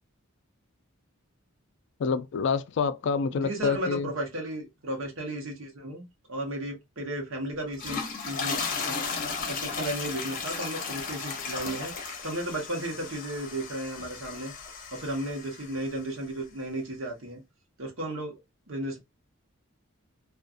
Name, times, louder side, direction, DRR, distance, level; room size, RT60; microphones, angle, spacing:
voice 1, 2.0-4.1, left 5 dB, 60° left, 0.3 m, -27 dB
voice 2, 3.3-8.6 8.9-9.0 9.5-14.5 14.9-17.4 17.8-18.3 18.7-19.0, right 1 dB, 65° right, 1.0 m, -34 dB
sound 1, 7.6-16.0, left 5 dB, 40° left, 0.7 m, -35 dB
2.5 x 2.4 x 2.4 m
head